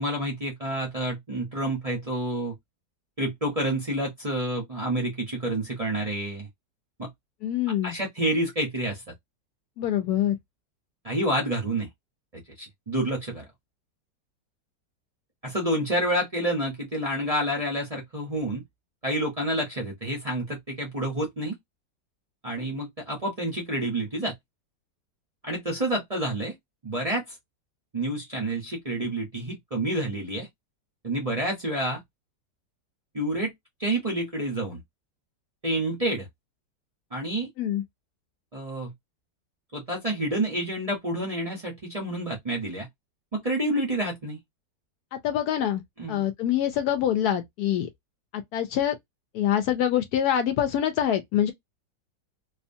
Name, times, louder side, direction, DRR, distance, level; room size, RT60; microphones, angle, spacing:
voice 1, 0.0-2.5 3.2-6.5 7.0-7.1 7.8-9.0 11.0-11.9 12.6-13.5 15.4-18.6 19.0-21.5 22.4-24.3 25.4-26.5 26.8-27.2 27.9-30.5 31.0-32.0 33.1-33.5 33.8-34.8 35.6-36.3 37.1-37.5 38.5-38.9 39.7-42.9 43.3-44.4 46.0-46.2, right 1 dB, 40° right, 0.5 m, -28 dB
voice 2, 7.4-8.0 9.8-10.4 37.6-37.8 45.1-45.8 46.1-47.9 48.3-49.0 49.3-51.5, left 10 dB, 70° left, 1.0 m, -25 dB
2.8 x 2.2 x 2.6 m
omnidirectional pair, 1.8 m